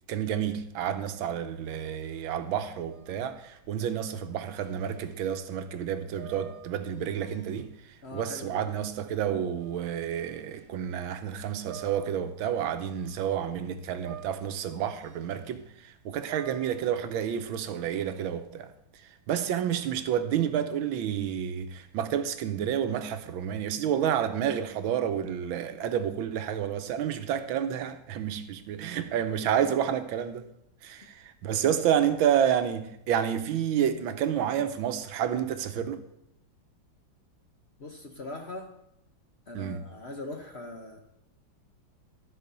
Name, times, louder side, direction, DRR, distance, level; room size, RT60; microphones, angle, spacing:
voice 1, 0.1-7.7 8.1-18.7 19.3-30.5 30.8-36.0 39.5-39.8, right 9 dB, 85° right, 1.6 m, -29 dB
sound 1, 1.7-10.7 11.2-13.6 13.9-18.3, right 14 dB, 65° right, 2.0 m, -51 dB
voice 2, 8.0-8.6 37.8-38.7 39.5-41.0, left 2 dB, 45° left, 0.9 m, -41 dB
13.5 x 4.6 x 6.8 m
omnidirectional pair, 2.1 m